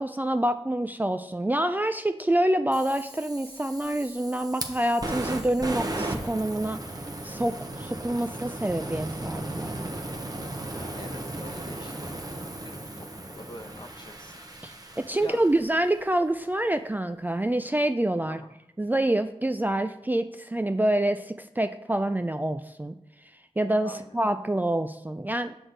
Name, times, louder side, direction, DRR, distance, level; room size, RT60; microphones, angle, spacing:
voice 1, 0.0-6.8 7.2-10.0 14.6-18.4 18.8-23.0 23.6-25.6, right 1 dB, 15° right, 8 dB, 0.3 m, -27 dB
Fire, 2.7-15.8, right 1 dB, 35° right, 1.0 m, -36 dB
voice 2, 10.8-14.4 14.9-15.4 18.3-18.6 23.8-24.3, left 1 dB, 40° left, 5 dB, 0.9 m, -46 dB
6.2 x 6.1 x 3.9 m, 0.80 s
cardioid pair, 45°, 11 cm